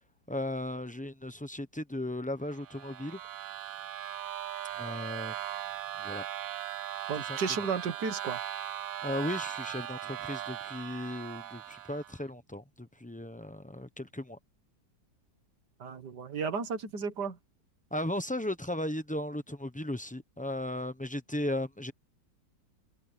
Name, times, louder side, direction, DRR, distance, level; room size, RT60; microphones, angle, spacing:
voice 1, 0.3-3.2 4.8-5.4 6.0-6.3 7.2-7.4 9.0-14.4 17.9-21.9, left 1 dB, 10° left, 0.3 m, -36 dB
sound 1, 2.5-12.2, right 13 dB, 90° right, 1.5 m, -39 dB
voice 2, 7.1-8.4 15.8-17.4, right 5 dB, 60° right, 2.1 m, -33 dB
omnidirectional pair, 2.0 m